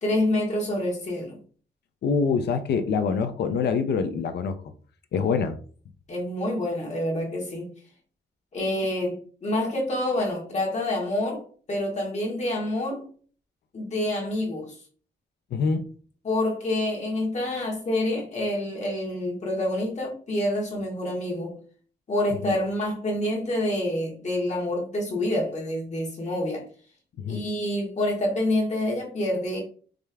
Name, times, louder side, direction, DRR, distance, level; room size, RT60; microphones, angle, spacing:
voice 1, 0.0-1.4 6.1-7.7 8.5-9.2 9.4-13.1 13.7-14.8 16.2-21.6 22.1-26.6 27.3-29.6, left 1 dB, 40° left, 1.5 m, -27 dB
voice 2, 2.0-4.6 5.1-5.6 15.5-15.8 22.4-22.5 27.2-27.4, left 5 dB, 65° left, 0.5 m, -25 dB
5.0 x 3.3 x 2.3 m
wide cardioid pair, 160°, 18 cm